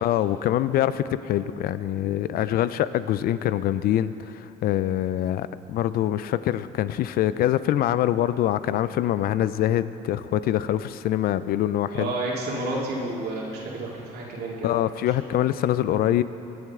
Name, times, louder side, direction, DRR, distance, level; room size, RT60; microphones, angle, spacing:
voice 1, 0.0-12.1 14.6-16.2, left 12 dB, 60° left, 14 dB, 0.4 m, -24 dB
voice 2, 11.9-14.8, right 2 dB, 70° right, -3 dB, 2.4 m, -30 dB
19.0 x 7.8 x 3.6 m, 3.0 s
cardioid pair, 110°, 17 cm